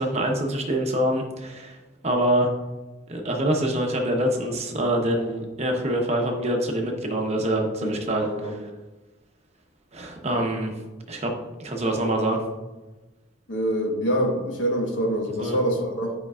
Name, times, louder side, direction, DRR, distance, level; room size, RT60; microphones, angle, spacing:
voice 1, 0.0-1.8 2.0-2.5 3.1-8.6 9.9-10.7 11.1-11.3 11.6-12.4 15.4-15.6, right 1 dB, 35° right, 2 dB, 0.9 m, -25 dB
voice 2, 8.2-8.5 13.5-16.1, equal, 70° left, 2 dB, 1.2 m, -25 dB
10.5 x 5.2 x 2.4 m, 1.1 s
head